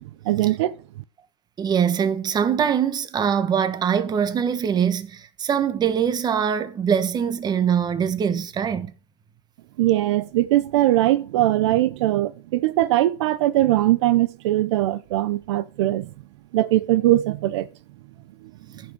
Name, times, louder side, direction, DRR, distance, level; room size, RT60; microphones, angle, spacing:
voice 1, 0.2-0.8 9.8-16.1 16.5-17.7, right 15 dB, 75° right, 0.7 m, -21 dB
voice 2, 1.6-8.9, right 8 dB, 30° right, 1.3 m, -23 dB
14.5 x 5.5 x 5.0 m
supercardioid pair, 115°, 15 cm